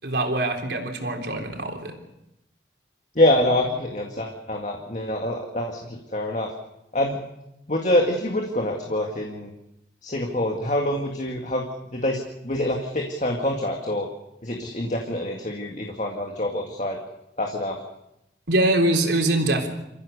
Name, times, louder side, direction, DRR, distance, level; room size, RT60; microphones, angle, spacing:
voice 1, 0.0-2.0 18.5-19.7, right 1 dB, 75° right, 3 dB, 3.7 m, -23 dB
voice 2, 3.2-6.5 6.9-7.2 7.7-9.5 10.0-11.6 11.9-12.2 12.4-14.1 14.4-17.0 17.4-17.8, left 1 dB, 40° left, 1 dB, 2.1 m, -25 dB
28.5 x 14.5 x 6.8 m, 0.87 s
head